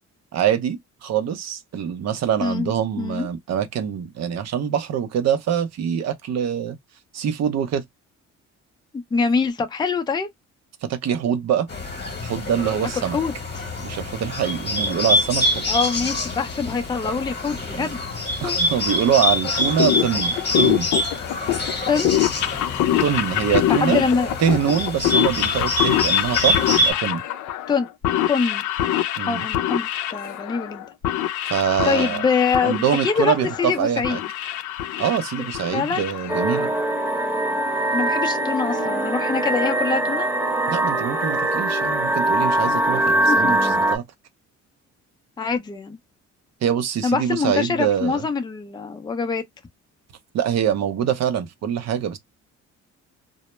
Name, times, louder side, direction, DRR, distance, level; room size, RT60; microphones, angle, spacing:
voice 1, 0.3-6.8 7.1-7.8 10.8-11.7 12.2-13.2 13.8-15.7 17.7-17.9 18.4-20.9 23.0-24.1 24.4-27.2 29.2-29.5 31.5-32.3 32.6-34.2 35.0-36.7 40.7-44.0 46.6-48.3 50.3-52.2, right 9 dB, 60° right, 0.6 m, -24 dB
voice 2, 2.4-3.3 8.9-10.3 13.1-13.7 15.7-18.0 18.4-18.6 21.9-22.2 23.7-24.3 27.7-27.9 28.3-28.6 29.3-30.9 31.8-34.2 35.7-36.1 37.9-40.3 43.3-43.7 45.4-46.0 47.0-49.4, left 5 dB, 15° left, 0.4 m, -24 dB
Bird, 11.7-26.9, left 1 dB, 35° left, 1.0 m, -25 dB
sound 1, 19.4-36.8, left 12 dB, 75° left, 0.5 m, -25 dB
sound 2, 36.3-44.0, right 1 dB, 5° right, 0.8 m, -22 dB
2.1 x 2.0 x 3.0 m
cardioid pair, 90°, 30 cm